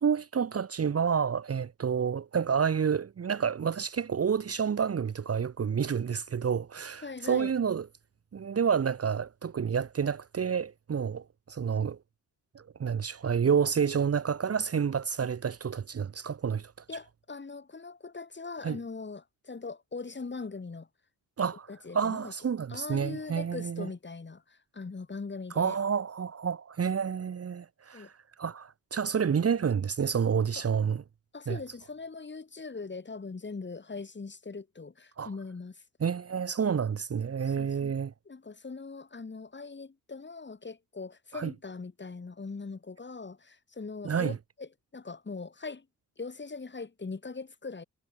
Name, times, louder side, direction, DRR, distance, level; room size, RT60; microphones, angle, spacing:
voice 1, 0.0-7.9 8.3-12.0 12.5-16.7 18.6-18.8 21.4-21.7 21.9-23.9 25.5-28.1 28.4-31.0 31.5-31.6 35.2-35.3 36.0-38.1 41.3-41.5 44.0-44.4, right 7 dB, 40° right, 1.4 m, -29 dB
voice 2, 7.0-7.5 16.9-20.9 21.7-22.3 22.7-25.8 27.9-28.1 30.5-30.6 31.3-35.8 37.4-37.9 38.2-45.9 46.2-47.8, left 4 dB, 30° left, 6.6 m, -41 dB
cardioid pair, 75°, 38 cm